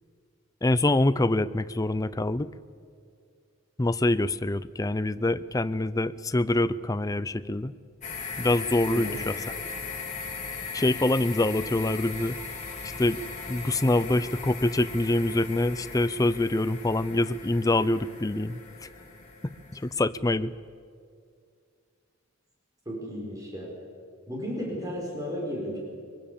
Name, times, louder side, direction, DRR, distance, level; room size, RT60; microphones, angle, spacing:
voice 1, 0.6-2.5 3.8-7.7 8.4-9.3 10.7-12.6 13.0-13.2 13.5-18.9 19.4-20.5, left 2 dB, 15° left, 14 dB, 0.5 m, -25 dB
sound 1, 8.0-19.9, left 4 dB, 35° left, 3.5 m, -38 dB
voice 2, 8.9-9.2 22.9-23.7 24.3-25.8, equal, 15° right, -3 dB, 5.2 m, -34 dB
23.5 x 23.0 x 7.1 m, 2.2 s
head